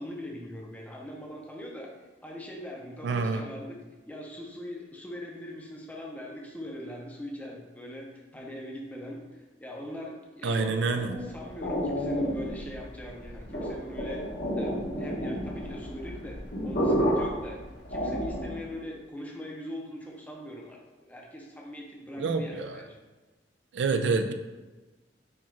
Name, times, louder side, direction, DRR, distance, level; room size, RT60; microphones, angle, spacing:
voice 1, 0.0-1.9 2.2-3.8 4.1-14.2 14.6-17.6 17.9-20.8 21.1-23.0, equal, 10° left, -2 dB, 0.5 m, -41 dB
voice 2, 3.0-3.5 10.4-11.2 22.2-22.8 23.7-24.3, right 4 dB, 80° right, 7 dB, 0.4 m, -27 dB
sound 1, 10.8-18.7, equal, 70° left, 1.2 m, -31 dB
4.4 x 2.3 x 4.3 m, 1.2 s
head